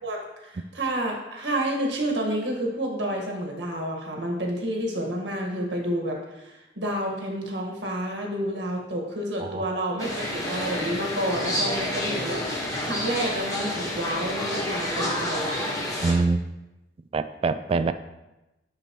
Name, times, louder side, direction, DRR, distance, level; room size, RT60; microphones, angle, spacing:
voice 1, 0.0-15.8, right 1 dB, 85° right, 0 dB, 1.6 m, -30 dB
sound 1, 10.0-16.1, left 1 dB, 20° left, 1.3 m, -29 dB
voice 2, 16.0-16.4 17.1-17.9, right 4 dB, 35° right, 11 dB, 0.3 m, -24 dB
9.1 x 6.8 x 3.1 m, 0.99 s
head